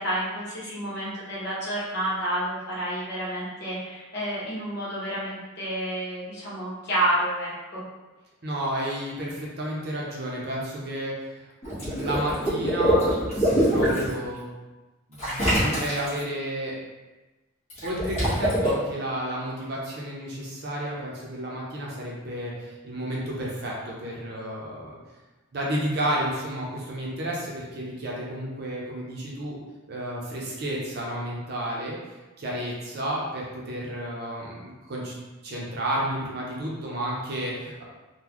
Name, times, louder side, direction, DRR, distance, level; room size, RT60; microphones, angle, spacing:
voice 1, 0.0-7.8, right 1 dB, 55° left, -8 dB, 1.3 m, -29 dB
voice 2, 8.4-11.5 11.8-13.1 13.3-14.5 15.1-16.8 17.8-25.0 25.5-29.6 29.9-32.0 32.4-35.1 35.4-37.8, right 1 dB, 50° right, -4 dB, 0.7 m, -31 dB
Water / Liquid, 11.6-14.1 15.2-16.2 17.7-18.7, equal, 30° left, 1.4 m, -24 dB
3.8 x 2.3 x 3.0 m, 1.1 s
head